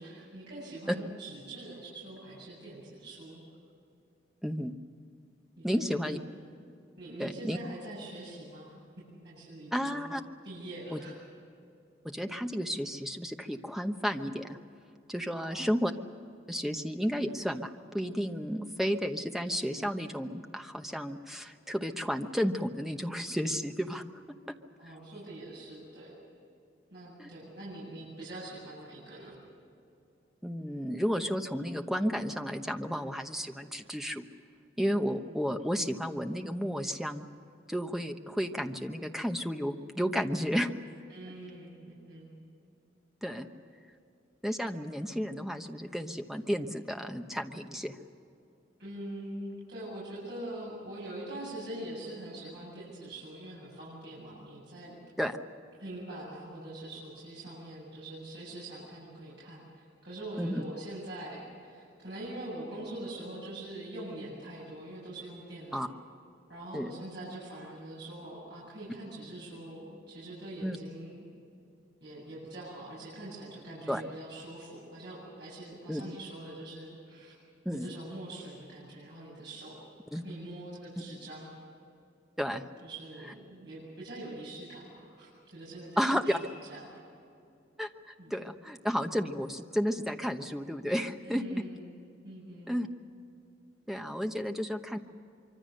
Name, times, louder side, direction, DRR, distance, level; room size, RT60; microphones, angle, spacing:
voice 1, 0.0-3.5 5.6-6.2 7.0-10.0 10.4-11.2 15.3-15.7 24.8-26.2 26.9-29.4 35.3-35.4 41.1-42.3 43.4-43.5 48.8-55.0 55.8-65.9 66.5-71.3 72.0-77.3 77.7-79.8 80.1-81.5 82.8-86.9 88.2-88.3 91.2-91.9 92.2-92.8, right 1 dB, 60° right, -8 dB, 7.9 m, -44 dB
voice 2, 4.4-4.7 5.6-6.2 7.2-7.6 9.7-10.2 10.9-11.0 12.0-14.6 15.1-15.9 16.5-24.2 24.8-24.9 27.2-27.3 30.4-34.3 34.8-37.3 37.7-40.7 43.2-43.5 44.4-48.0 55.2-55.4 60.4-60.6 65.7-65.9 66.7-67.0 70.6-70.8 73.9-74.0 75.9-76.0 77.6-77.9 80.1-80.2 82.4-82.6 86.0-86.4 87.8-91.6 92.7-92.9 93.9-95.0, equal, ahead, 5 dB, 1.0 m, -32 dB
25.0 x 24.5 x 6.6 m, 2.6 s
head